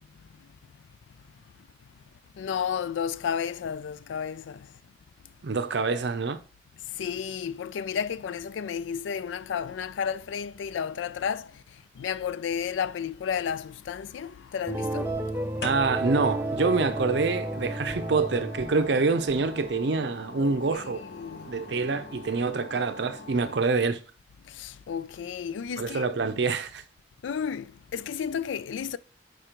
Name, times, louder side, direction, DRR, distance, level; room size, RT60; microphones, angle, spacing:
voice 1, 2.3-4.7 6.8-15.2 20.4-20.6 20.8-21.5 24.4-26.0 27.2-29.0, left 7 dB, 85° left, 0.3 m, -32 dB
voice 2, 5.4-6.4 15.6-21.0 21.5-24.0 25.8-26.8, right 4 dB, 65° right, 0.5 m, -26 dB
Old PC startup idle & shutdown, 13.2-14.0 15.4-23.6, left 2 dB, 65° left, 1.0 m, -43 dB
sound 1, 14.7-19.7, right 1 dB, 10° right, 0.5 m, -32 dB
4.8 x 4.5 x 5.0 m
head